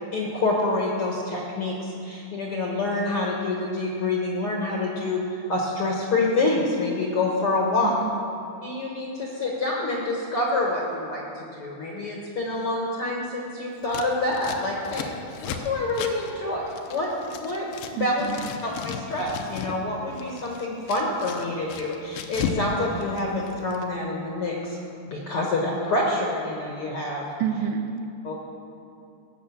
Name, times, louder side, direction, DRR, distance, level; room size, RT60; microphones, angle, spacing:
voice 1, 0.1-7.9 8.6-15.2 15.4-18.3 18.6-24.8 25.1-27.2 28.2-28.4, left 2 dB, 60° left, -2 dB, 1.6 m, -27 dB
voice 2, 7.8-8.2 18.0-18.5 27.4-28.1, right 8 dB, 85° right, 9 dB, 2.3 m, -29 dB
Scissors, 13.8-17.9 18.2-19.8 20.1-22.7 22.9-23.8, left 6 dB, 85° left, 2.6 m, -35 dB
17.5 x 6.8 x 7.1 m, 2.6 s
omnidirectional pair, 4.3 m